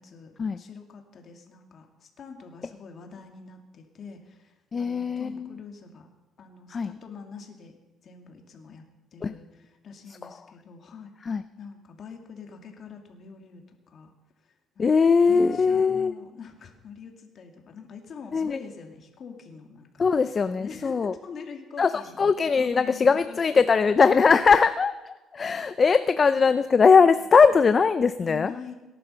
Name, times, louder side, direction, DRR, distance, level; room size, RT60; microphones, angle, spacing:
voice 1, 0.0-6.1 6.4-7.8 8.0-8.8 9.1-11.1 11.6-14.1 14.4-14.9 15.2-20.2 20.6-24.0 25.6-26.3 27.0-27.1 28.2-28.8, left 6 dB, 45° left, 4 dB, 2.4 m, -44 dB
voice 2, 4.7-5.5 6.7-6.9 9.2-9.3 11.3-11.4 14.8-16.1 18.3-18.6 20.0-21.1 21.8-28.5, left 5 dB, 30° left, 12 dB, 0.4 m, -20 dB
18.5 x 11.0 x 5.7 m, 1.1 s
cardioid pair, 130°, 0 cm